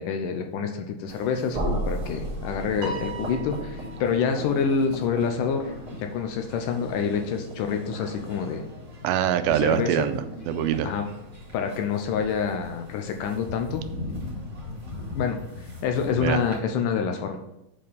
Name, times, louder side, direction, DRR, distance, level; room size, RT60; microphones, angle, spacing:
voice 1, 0.0-8.7 9.5-10.1 10.8-11.0 11.5-13.8 15.2-15.4 15.8-17.4, left 6 dB, 80° left, 5 dB, 2.1 m, -27 dB
sound 1, 1.1-16.6, left 2 dB, 5° right, 2.2 m, -40 dB
sound 2, 1.5-7.4, right 1 dB, 35° right, 0.9 m, -35 dB
Piano, 2.8-4.4, right 3 dB, 60° right, 2.4 m, -38 dB
voice 2, 9.0-10.9 16.2-16.4, right 10 dB, 85° right, 10 dB, 2.4 m, -24 dB
7.5 x 4.3 x 5.3 m, 0.87 s
omnidirectional pair, 4.1 m